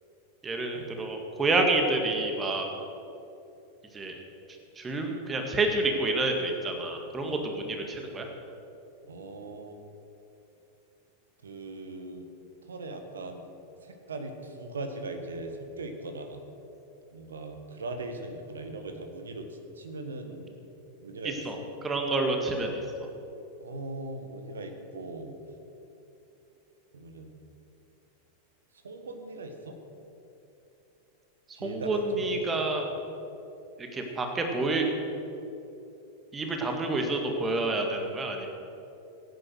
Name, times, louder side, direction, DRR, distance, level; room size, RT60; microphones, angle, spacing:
voice 1, 0.4-2.7 3.9-4.2 4.8-8.3 21.5-21.6 21.8-22.8 31.6-32.9 33.8-34.9 36.3-38.5, right 2 dB, 20° right, 3 dB, 2.0 m, -28 dB
voice 2, 9.0-9.8 11.4-12.3 12.6-13.4 13.8-16.4 17.1-20.5 21.0-21.6 23.6-25.4 26.9-27.3 28.7-29.8 31.5-32.6, right 2 dB, 70° right, 6 dB, 1.5 m, -40 dB
17.0 x 9.6 x 6.4 m, 2.9 s
figure-of-eight pair, 90°, 0 cm